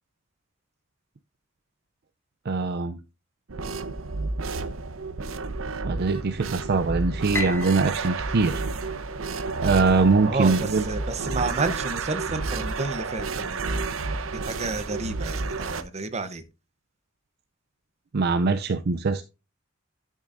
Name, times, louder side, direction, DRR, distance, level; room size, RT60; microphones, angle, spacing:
voice 1, 2.5-3.0 5.8-8.6 9.6-10.9 18.1-19.2, right 4 dB, 50° right, 9 dB, 0.5 m, -22 dB
sound 1, 3.5-15.8, right 3 dB, 80° right, 0.8 m, -31 dB
Piano, 7.3-9.6, left 3 dB, 10° left, 0.6 m, -36 dB
voice 2, 10.2-13.8 14.3-16.4, right 3 dB, 35° right, 10 dB, 0.9 m, -31 dB
12.0 x 6.3 x 2.6 m, 0.29 s
head